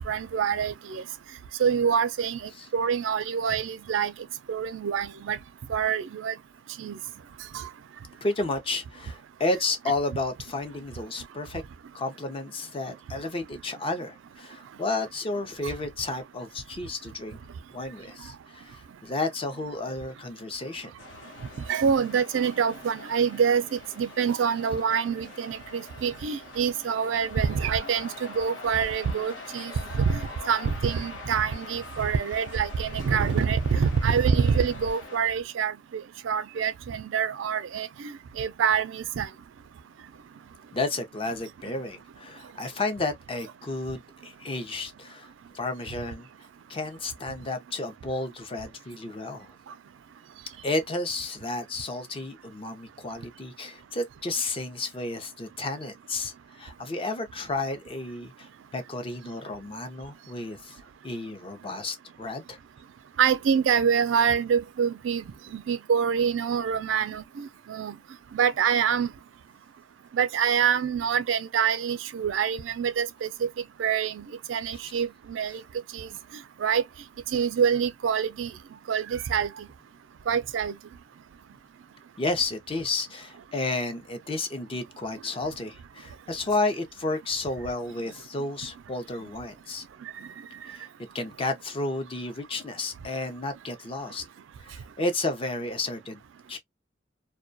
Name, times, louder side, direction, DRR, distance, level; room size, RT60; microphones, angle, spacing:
voice 1, 0.1-1.0 1.6-4.1 4.5-5.4 5.7-6.3 6.8-7.0 7.5-7.7 21.7-28.1 28.3-30.2 30.5-35.7 36.2-39.3 63.2-65.2 65.5-68.0 68.3-69.1 70.1-73.5 73.8-75.6 75.9-76.1 76.6-76.8 77.3-78.5 78.9-79.7 80.3-80.8, right 7 dB, 75° right, 0.4 m, -26 dB
voice 2, 8.2-11.6 11.9-17.4 17.7-20.9 40.7-46.3 46.7-49.5 50.6-62.6 74.7-74.8 82.2-89.8 90.6-90.9 91.1-94.2 94.6-96.2 96.5-96.6, left 2 dB, 30° left, 0.5 m, -32 dB
sound 1, 21.0-35.2, left 3 dB, 80° left, 0.9 m, -43 dB
2.2 x 2.2 x 2.5 m
head